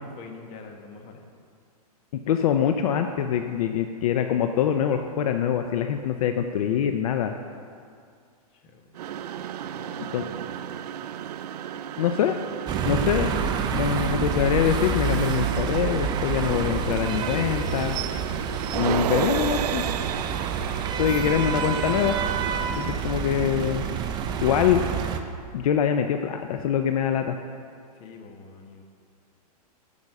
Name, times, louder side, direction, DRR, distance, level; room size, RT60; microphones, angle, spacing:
voice 1, 0.0-1.2 8.5-11.3 27.9-28.8, left 4 dB, 30° left, 4 dB, 1.2 m, -47 dB
voice 2, 2.3-7.3 10.1-10.2 12.0-12.4 12.8-13.3 13.7-18.0 18.7-19.8 21.0-22.2 22.7-23.9 24.4-24.8 25.5-27.4, left 9 dB, 65° left, 6 dB, 0.6 m, -24 dB
sound 1, 8.9-23.9, right 10 dB, 80° right, 0.5 m, -34 dB
sound 2, 12.7-25.2, right 6 dB, 20° right, 0.5 m, -28 dB
12.0 x 5.5 x 6.6 m, 2.3 s
hypercardioid pair, 145°, 20 cm